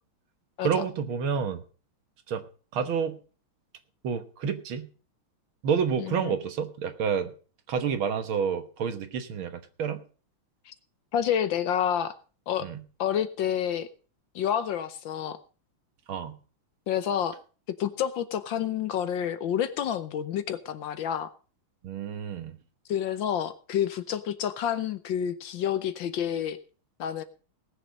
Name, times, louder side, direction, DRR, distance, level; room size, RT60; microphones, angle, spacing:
voice 1, 0.6-1.6 2.3-2.4 2.7-3.2 4.0-4.9 5.6-7.3 7.7-10.0 12.6-12.8 16.1-16.4 21.8-22.5, right 7 dB, 70° right, 10 dB, 2.0 m, -29 dB
voice 2, 6.0-6.3 10.7-10.8 11.1-12.2 12.5-12.7 13.0-13.9 14.3-15.4 16.9-17.4 17.8-21.3 22.9-26.6 27.0-27.2, left 9 dB, 65° left, 12 dB, 1.4 m, -29 dB
19.0 x 7.0 x 5.2 m, 0.38 s
omnidirectional pair, 2.4 m